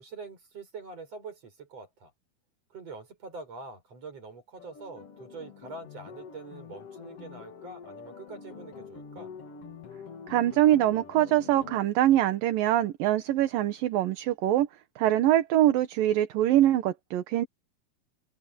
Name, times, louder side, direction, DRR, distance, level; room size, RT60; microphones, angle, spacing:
voice 1, 0.0-2.1 2.7-9.3, right 3 dB, 40° right, 7.5 m, -44 dB
sound 1, 4.6-11.8, left 6 dB, 45° left, 2.6 m, -46 dB
voice 2, 10.3-14.7 15.0-17.5, right 13 dB, 70° right, 2.8 m, -23 dB
omnidirectional pair, 4.5 m